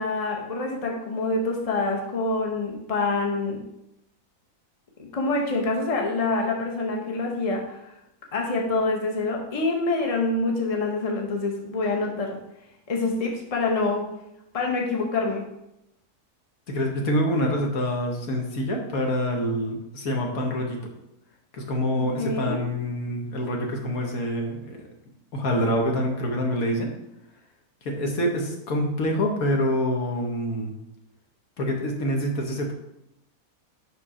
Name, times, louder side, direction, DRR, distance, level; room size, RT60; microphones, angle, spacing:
voice 1, 0.0-3.6 5.0-7.8 8.3-12.4 12.9-14.1 14.5-15.4 22.0-22.6, left 3 dB, 30° left, 0 dB, 0.9 m, -26 dB
voice 2, 16.7-20.8 21.5-24.9 25.3-26.9 27.8-30.7 31.6-32.7, equal, 65° left, 1 dB, 1.5 m, -26 dB
5.3 x 5.2 x 4.9 m, 0.85 s
omnidirectional pair, 1.7 m